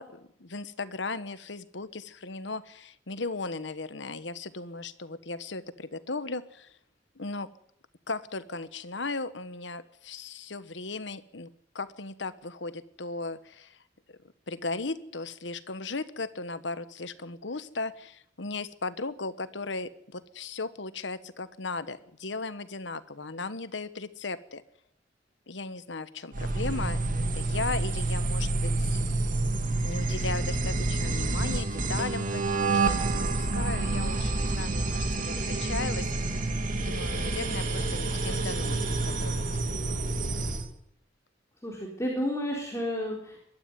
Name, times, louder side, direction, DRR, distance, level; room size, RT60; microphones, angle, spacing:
voice 1, 0.0-6.7 7.1-7.5 8.1-11.5 11.7-13.8 14.5-24.6 25.5-29.0 29.8-32.9 33.3-36.1 36.8-39.4, left 3 dB, 70° left, 13 dB, 1.3 m, -37 dB
sound 1, 26.3-40.7, right 2 dB, 45° right, 2.5 m, -28 dB
voice 2, 41.6-43.4, equal, 15° left, -2 dB, 4.0 m, -31 dB
21.5 x 13.0 x 9.6 m, 0.71 s
head